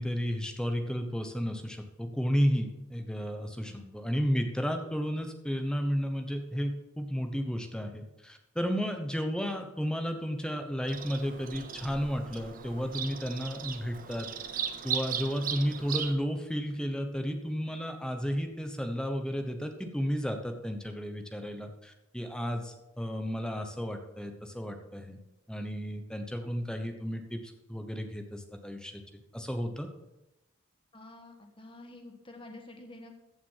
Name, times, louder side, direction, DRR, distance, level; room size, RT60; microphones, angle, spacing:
voice 1, 0.0-14.3 14.8-25.2 25.5-29.9, equal, 5° left, 6 dB, 1.0 m, -33 dB
Bird vocalization bird call bird song, 10.9-16.1, right 8 dB, 40° right, 0.7 m, -37 dB
voice 2, 30.9-33.1, left 2 dB, 25° left, 3 dB, 1.4 m, -48 dB
15.0 x 6.0 x 5.7 m, 0.95 s
head